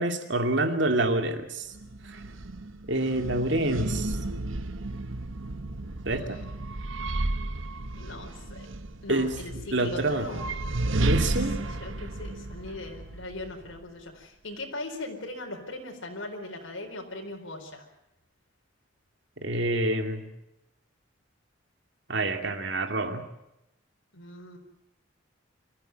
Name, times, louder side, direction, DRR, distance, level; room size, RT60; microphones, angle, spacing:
voice 1, 0.0-1.7 2.1-2.2 2.9-4.2 6.0-6.4 9.1-9.3 9.7-10.3 11.0-11.5 19.4-20.3 22.1-23.2, right 2 dB, 65° right, 6 dB, 2.5 m, -27 dB
sound 1, 1.7-13.8, right 2 dB, 80° right, 1.2 m, -33 dB
voice 2, 6.1-6.8 8.0-8.7 9.0-17.8 24.1-24.6, left 2 dB, 85° left, 1 dB, 4.4 m, -40 dB
25.0 x 15.0 x 9.1 m, 0.88 s
head